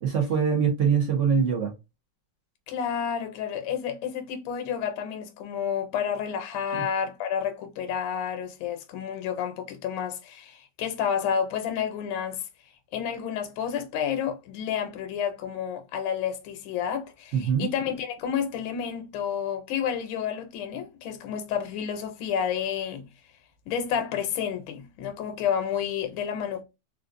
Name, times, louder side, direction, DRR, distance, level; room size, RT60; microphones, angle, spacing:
voice 1, 0.0-1.7 6.7-6.8 17.3-17.7, right 7 dB, 65° right, 0.7 m, -23 dB
voice 2, 2.7-12.4 12.9-23.0 23.7-26.6, left 8 dB, 80° left, 1.4 m, -30 dB
3.8 x 2.4 x 2.4 m
omnidirectional pair, 2.2 m